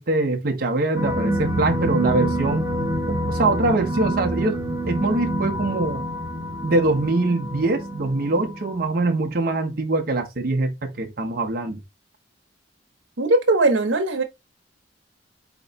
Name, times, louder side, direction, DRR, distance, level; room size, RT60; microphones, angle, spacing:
voice 1, 0.0-2.7 3.1-6.0 6.6-11.8, right 2 dB, 50° right, 0.8 m, -23 dB
sound 1, 0.9-9.0, right 1 dB, 15° right, 1.1 m, -27 dB
voice 2, 13.2-14.2, right 2 dB, 85° right, 1.0 m, -19 dB
4.4 x 3.0 x 4.0 m
head